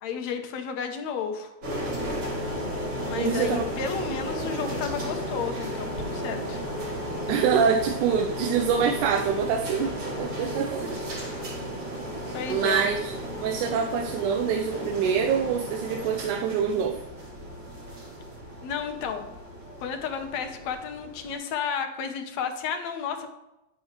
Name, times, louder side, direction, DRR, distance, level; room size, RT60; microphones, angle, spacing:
voice 1, 0.0-1.5 3.0-6.6 12.3-12.9 18.6-19.3 19.8-23.3, left 6 dB, 70° left, 6 dB, 2.2 m, -32 dB
sound 1, 1.6-21.3, equal, 50° right, 4.8 m, -34 dB
voice 2, 3.2-3.6 7.3-10.9 12.5-13.2 13.4-17.0, right 7 dB, 85° right, 2 dB, 2.2 m, -25 dB
10.5 x 9.8 x 3.3 m, 0.94 s
omnidirectional pair, 3.5 m